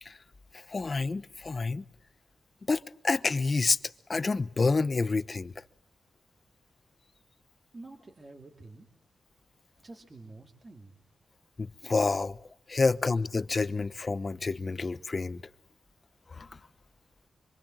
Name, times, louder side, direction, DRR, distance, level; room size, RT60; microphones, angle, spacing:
voice 1, 0.5-1.8 2.7-3.8 4.1-5.5 11.6-12.4 12.7-15.4 16.3-16.5, left 3 dB, 35° left, 1.0 m, -28 dB
voice 2, 7.7-8.9 9.8-11.0, right 2 dB, 30° right, 2.8 m, -48 dB
26.0 x 25.0 x 7.8 m
wide cardioid pair, 130°, 0 cm